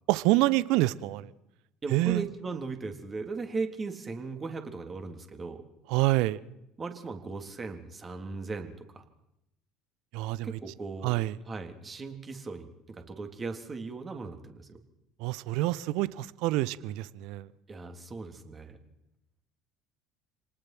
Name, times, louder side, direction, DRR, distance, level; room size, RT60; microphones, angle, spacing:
voice 1, 0.1-1.3 1.9-2.2 5.9-6.4 10.1-10.6 11.0-11.4 15.2-17.5, right 18 dB, 60° right, 0.9 m, -27 dB
voice 2, 1.8-5.6 6.8-9.0 10.4-11.1 11.4-14.8 17.7-18.8, right 4 dB, 25° right, 3.5 m, -38 dB
28.5 x 19.5 x 6.1 m
figure-of-eight pair, 60°, 0 cm